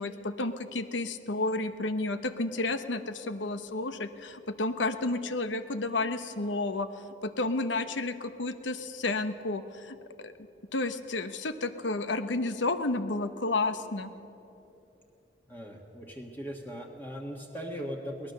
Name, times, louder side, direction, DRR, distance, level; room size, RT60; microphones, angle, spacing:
voice 1, 0.0-6.9 7.2-10.0 10.2-10.3 10.7-14.1, left 2 dB, 90° left, 10 dB, 1.0 m, -31 dB
voice 2, 15.5-18.3, equal, 10° left, 0 dB, 1.4 m, -39 dB
23.0 x 18.5 x 6.7 m, 2.9 s
head